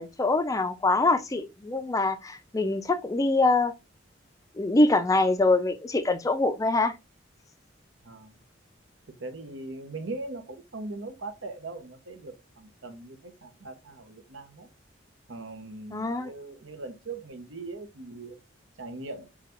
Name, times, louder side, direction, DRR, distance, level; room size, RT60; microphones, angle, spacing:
voice 1, 0.0-3.7 4.6-6.9 15.9-16.3, left 2 dB, 15° left, 0.4 m, -24 dB
voice 2, 8.0-8.4 9.2-14.7 15.3-18.4 18.8-19.3, right 2 dB, 80° right, 0.9 m, -40 dB
5.6 x 2.3 x 2.9 m
head